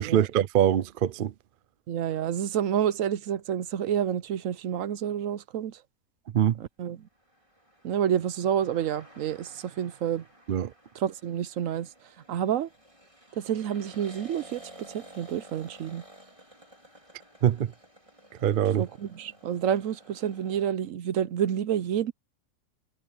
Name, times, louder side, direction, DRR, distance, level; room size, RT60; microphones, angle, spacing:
voice 1, 0.0-1.3 6.3-6.6 10.5-10.7 17.4-17.7 18.4-18.9, right 10 dB, 55° right, 0.6 m, -23 dB
voice 2, 1.9-5.8 6.6-7.0 7.8-10.2 10.9-11.9 12.3-12.7 13.4-14.6 14.9-16.0 18.8-22.1, right 9 dB, 70° right, 1.0 m, -29 dB
sound 1, 7.2-20.7, right 1 dB, 20° right, 5.0 m, -53 dB
omnidirectional pair, 1.5 m